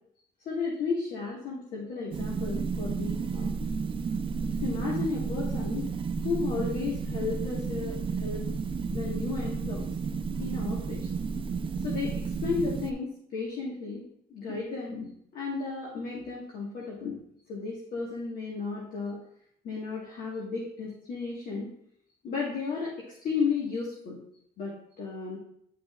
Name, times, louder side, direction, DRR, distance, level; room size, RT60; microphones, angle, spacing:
voice 1, 0.4-3.5 4.6-5.8 6.2-8.4 8.9-9.9 10.4-11.1 11.8-12.1 12.4-14.0 14.3-17.2 17.5-19.2 19.6-21.7 22.2-22.9 23.2-24.2 24.6-25.4, left 4 dB, 60° left, -4 dB, 1.6 m, -33 dB
sound 1, 2.1-12.9, right 5 dB, 30° right, 0.5 m, -32 dB
9.9 x 5.2 x 2.4 m, 0.70 s
cardioid pair, 110°, 17 cm